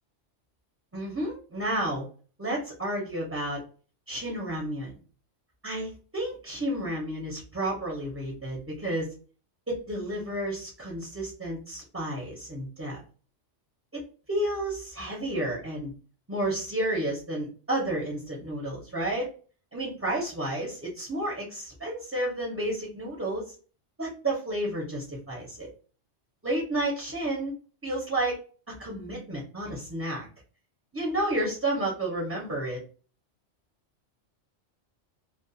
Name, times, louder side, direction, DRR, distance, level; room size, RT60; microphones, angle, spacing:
voice 1, 0.9-2.0 2.4-3.6 4.1-5.0 5.6-9.1 9.7-13.0 13.9-14.0 14.3-15.9 16.3-19.3 19.7-23.5 24.0-25.7 26.4-27.5 27.8-28.4 28.7-30.3 30.9-32.8, right 1 dB, 15° right, -3 dB, 0.5 m, -31 dB
2.3 x 2.1 x 2.6 m, 0.38 s
omnidirectional pair, 1.2 m